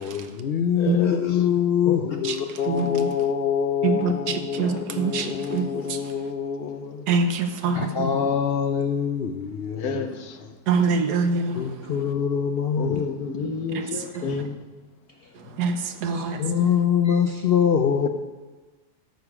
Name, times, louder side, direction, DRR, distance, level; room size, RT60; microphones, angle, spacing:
voice 1, 0.0-7.1 7.7-10.2 11.6-13.0 16.0-18.1, left 8 dB, 85° left, 0.5 m, -24 dB
voice 2, 0.8-1.2 1.9-2.4 4.6-4.8 9.8-10.4 12.8-14.5, left 5 dB, 65° left, 1.3 m, -30 dB
voice 3, 3.8-6.0 7.1-8.1 10.7-11.9 13.7-14.5 15.5-16.4, right 4 dB, 75° right, 1.4 m, -25 dB
12.0 x 6.9 x 4.9 m
omnidirectional pair, 1.8 m